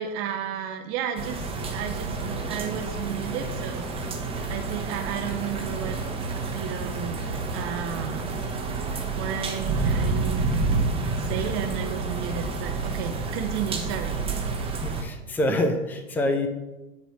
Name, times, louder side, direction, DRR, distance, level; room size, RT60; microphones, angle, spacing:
voice 1, 0.0-4.2 4.5-6.0 6.5-8.3 9.1-10.7 11.2-14.2, right 8 dB, 30° right, 6 dB, 0.7 m, -33 dB
sound 1, 1.2-15.0, right 3 dB, 15° right, 1.3 m, -29 dB
voice 2, 14.8-16.5, left 1 dB, 5° left, 7 dB, 0.6 m, -26 dB
10.0 x 4.2 x 6.2 m, 1.1 s
figure-of-eight pair, 95°, 42 cm